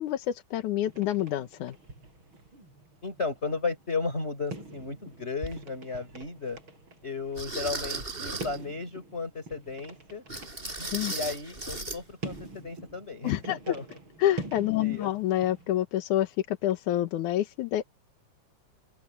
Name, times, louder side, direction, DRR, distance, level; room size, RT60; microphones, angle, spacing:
voice 1, 0.0-1.8 10.9-11.1 13.2-13.6 14.2-17.8, left 13 dB, 80° left, 2.6 m, -28 dB
sound 1, 0.8-15.8, right 2 dB, 40° right, 8.8 m, -46 dB
voice 2, 3.0-6.6 7.0-10.2 11.1-13.9 14.8-15.1, left 4 dB, 20° left, 5.4 m, -34 dB
sound 2, 5.4-5.6 6.2-6.3 7.4-8.6 10.3-12.0 12.3-12.5 12.9-13.0, right 2 dB, 15° right, 6.2 m, -36 dB
open air
omnidirectional pair, 3.4 m